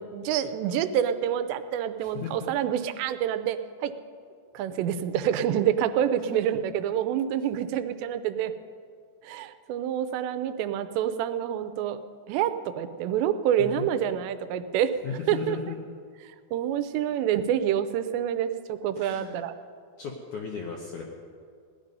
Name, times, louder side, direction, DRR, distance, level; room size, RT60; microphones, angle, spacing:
voice 1, 0.0-3.9 4.5-8.5 9.2-12.0 12.3-14.9 15.3-15.6 16.5-19.5, right 10 dB, 90° right, 11 dB, 2.9 m, -27 dB
voice 2, 2.0-2.3 4.6-4.7 6.2-6.5 13.6-13.9 15.0-15.8 19.0-19.5 20.0-21.0, left 6 dB, 75° left, 0 dB, 1.8 m, -36 dB
17.5 x 11.0 x 5.3 m, 2.2 s
omnidirectional pair, 4.9 m